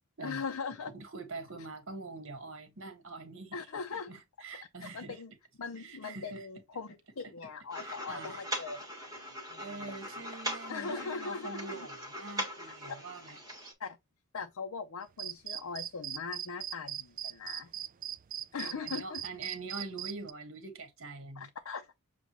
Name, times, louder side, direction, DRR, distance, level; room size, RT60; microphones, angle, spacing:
voice 1, 0.2-0.9 3.5-4.1 4.8-5.3 5.6-10.1 10.7-11.9 13.8-14.0 14.3-17.7 18.5-19.2 21.4-21.9, left 5 dB, 75° left, 0.6 m, -40 dB
voice 2, 0.9-3.6 3.9-5.2 5.8-6.5 7.7-8.4 9.6-13.4 18.6-21.5, right 3 dB, 60° right, 1.5 m, -44 dB
sound 1, 7.7-13.7, equal, 15° right, 1.4 m, -41 dB
sound 2, 15.2-20.3, right 11 dB, 40° right, 0.3 m, -39 dB
7.1 x 2.4 x 2.9 m
head